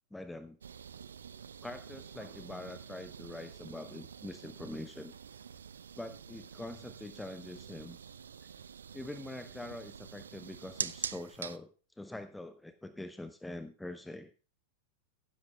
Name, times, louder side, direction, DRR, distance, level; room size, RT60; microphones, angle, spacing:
voice 1, 0.1-0.6 1.6-5.1 6.0-8.0 8.9-11.7 12.0-14.3, left 1 dB, 5° left, 10 dB, 0.7 m, -44 dB
sound 1, 0.6-11.6, right 7 dB, 70° right, 0.6 m, -45 dB
15.5 x 12.5 x 2.3 m, 0.36 s
figure-of-eight pair, 90°, 0 cm